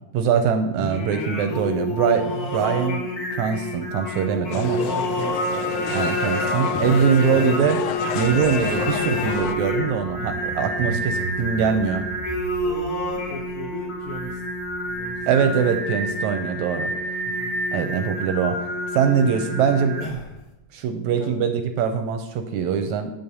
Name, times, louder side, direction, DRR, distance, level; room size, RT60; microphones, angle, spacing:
voice 1, 0.1-3.0 3.3-4.8 5.9-7.8 8.2-12.1 15.3-16.9 17.7-18.6 18.9-20.0 20.7-23.1, right 7 dB, 80° right, 7 dB, 1.9 m, -22 dB
Singing, 0.8-20.4, equal, 40° left, 1.6 m, -28 dB
sound 1, 4.5-9.5, left 9 dB, 80° left, 1.7 m, -30 dB
voice 2, 4.5-5.7 10.8-10.9 12.5-14.4 14.8-15.5 17.2-17.5 21.0-21.4, equal, 60° left, -1 dB, 1.5 m, -37 dB
Car / Engine, 8.2-15.2, right 3 dB, 5° right, 1.2 m, -38 dB
9.1 x 5.7 x 6.8 m, 0.95 s
omnidirectional pair, 3.7 m